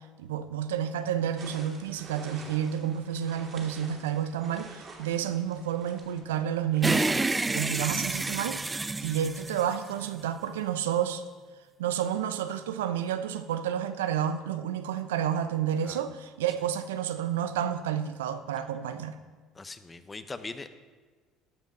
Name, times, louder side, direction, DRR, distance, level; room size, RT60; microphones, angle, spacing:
voice 1, 0.2-7.1 7.5-8.8 9.0-11.2 11.8-19.2, right 9 dB, 85° right, 10 dB, 0.5 m, -30 dB
sound 1, 1.4-8.6, right 3 dB, 40° right, 2.4 m, -49 dB
sound 2, 6.8-10.3, right 3 dB, 15° right, 0.3 m, -29 dB
voice 2, 19.5-20.7, left 3 dB, 20° left, 11 dB, 0.7 m, -41 dB
13.0 x 5.3 x 5.2 m, 1.4 s
hypercardioid pair, 75°, 0 cm